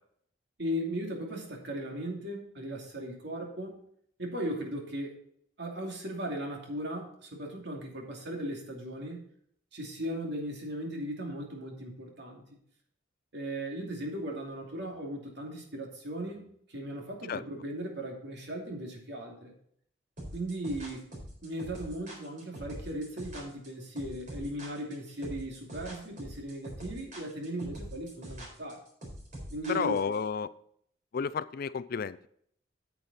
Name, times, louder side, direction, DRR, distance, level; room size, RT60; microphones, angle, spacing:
voice 1, 0.6-3.8 4.2-5.2 5.6-9.2 9.7-12.4 13.3-19.5 20.3-21.1 21.4-28.8 29.5-30.0, right 1 dB, 60° right, 1 dB, 2.6 m, -37 dB
sound 1, 20.2-30.2, right 1 dB, 40° right, 3.9 m, -43 dB
voice 2, 29.7-30.5 31.1-32.3, left 6 dB, 50° left, 16 dB, 0.4 m, -31 dB
8.9 x 8.4 x 4.2 m, 0.66 s
head